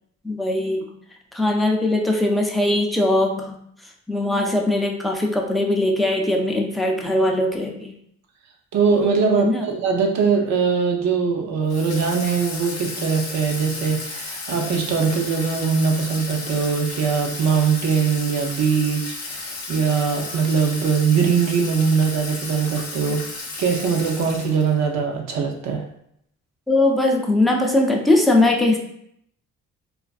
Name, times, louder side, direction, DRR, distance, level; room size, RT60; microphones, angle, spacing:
voice 1, 0.2-0.9 1.3-3.6 4.1-7.9 9.4-9.7 26.7-28.8, left 1 dB, ahead, 0 dB, 0.3 m, -20 dB
voice 2, 8.7-25.8, right 5 dB, 65° right, 2 dB, 0.6 m, -21 dB
Water tap faucet / Sink (filling or washing), 11.7-24.8, left 3 dB, 55° left, 0.6 m, -33 dB
2.4 x 2.4 x 2.3 m, 0.71 s
cardioid pair, 90°, 30 cm